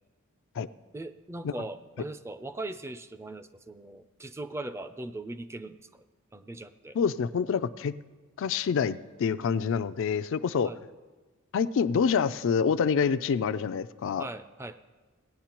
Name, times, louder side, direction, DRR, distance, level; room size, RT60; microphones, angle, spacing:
voice 1, 0.9-6.0 6.3-7.0 10.6-10.8 14.2-14.8, right 2 dB, 10° right, 11 dB, 0.4 m, -40 dB
voice 2, 6.9-8.0 8.4-10.7 11.5-14.2, left 6 dB, 65° left, 13 dB, 0.4 m, -27 dB
18.0 x 10.0 x 2.9 m, 1.3 s
head